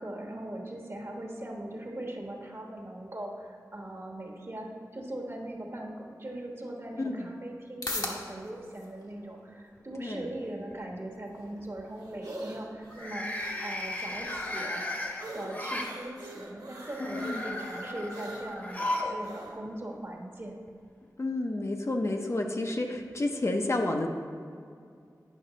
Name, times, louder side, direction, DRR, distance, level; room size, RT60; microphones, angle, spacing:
voice 1, 0.0-5.9 6.2-14.8 15.1-20.6, right 1 dB, 40° right, 0 dB, 1.2 m, -40 dB
sound 1, 6.3-23.3, left 2 dB, 65° left, 1.1 m, -47 dB
voice 2, 7.0-7.3 10.0-10.2 17.1-17.6 21.2-24.1, left 2 dB, 45° left, 3 dB, 0.6 m, -30 dB
sound 2, 9.3-10.0 10.3-10.7 12.8-15.9 16.8-19.2 19.5-19.6 20.7-20.8, left 1 dB, 25° left, 1.0 m, -36 dB
sound 3, 11.3-19.6, right 1 dB, 70° right, 1.3 m, -45 dB
9.2 x 5.3 x 3.9 m, 2.3 s
wide cardioid pair, 75°, 7 cm